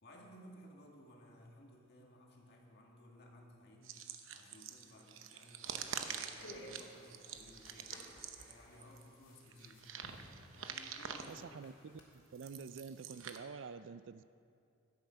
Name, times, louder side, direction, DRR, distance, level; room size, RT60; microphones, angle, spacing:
voice 1, 0.0-8.1 8.4-10.0 10.5-11.5 11.9-12.0, left 1 dB, 55° left, 0 dB, 1.9 m, -59 dB
sound 1, 3.8-9.1 9.5-11.4 12.1-13.4, right 7 dB, 85° right, 0.8 m, -46 dB
sound 2, 6.1-12.0, equal, 75° left, 2.6 m, -56 dB
voice 2, 11.3-14.2, right 5 dB, 65° right, 14 dB, 0.4 m, -48 dB
13.0 x 9.6 x 5.7 m, 2.4 s
head